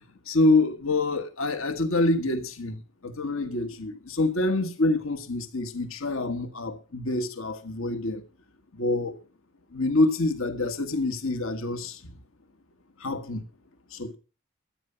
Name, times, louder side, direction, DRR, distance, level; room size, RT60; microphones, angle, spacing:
voice 1, 0.3-8.2 8.7-9.2 9.7-12.2 13.0-13.4 13.9-14.2, left 2 dB, 65° left, 1.6 m, -26 dB
14.0 x 8.9 x 5.7 m
head